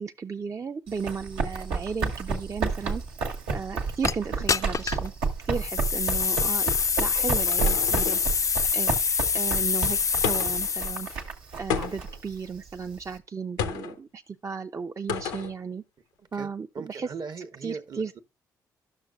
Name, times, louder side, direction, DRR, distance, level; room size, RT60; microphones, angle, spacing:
voice 1, 0.0-3.0 3.5-5.1 5.5-8.2 8.7-11.1 11.6-15.8 16.3-17.1 17.6-18.2, right 5 dB, 35° right, 0.5 m, -35 dB
Run, 0.9-13.1, right 4 dB, 80° right, 1.2 m, -31 dB
sound 1, 4.0-4.1 4.5-5.1 5.6-11.2, left 6 dB, 40° left, 0.4 m, -26 dB
sound 2, 6.8-8.4 10.2-10.7 11.7-12.2 13.6-14.0 15.1-15.5, left 7 dB, 90° left, 0.7 m, -31 dB
voice 2, 7.1-7.6 16.2-18.2, right 5 dB, 50° right, 1.0 m, -40 dB
11.5 x 6.4 x 2.3 m
hypercardioid pair, 45°, 9 cm